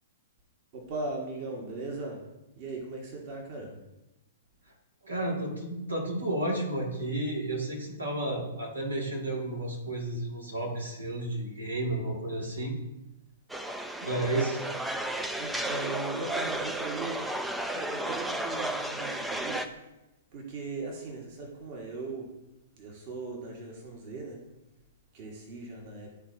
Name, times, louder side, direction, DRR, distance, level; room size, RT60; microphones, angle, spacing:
voice 1, 0.7-2.2 2.5-3.7 15.4-17.2 17.7-19.7 20.3-22.3 22.7-24.4 25.1-26.1, right 3 dB, 45° right, 0 dB, 1.6 m, -38 dB
voice 2, 5.0-12.8 14.0-14.6, right 1 dB, 90° right, -2 dB, 2.2 m, -32 dB
sound 1, 13.5-19.7, right 1 dB, 5° right, 0.5 m, -33 dB
12.0 x 4.1 x 2.7 m, 0.97 s
figure-of-eight pair, 115°, 0 cm